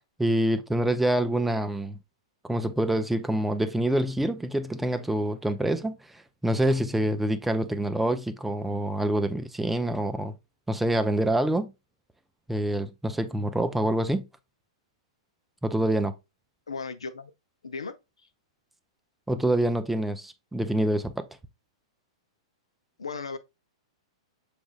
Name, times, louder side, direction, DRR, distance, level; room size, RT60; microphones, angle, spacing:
voice 1, 0.2-2.0 2.4-6.0 6.4-10.3 10.7-11.7 12.5-14.3 15.6-16.1 19.3-21.3, right 1 dB, 5° right, 0.4 m, -26 dB
voice 2, 16.7-17.3 17.6-17.9 23.0-23.4, left 4 dB, 85° left, 0.6 m, -35 dB
6.0 x 3.3 x 2.3 m
hypercardioid pair, 110°, 3 cm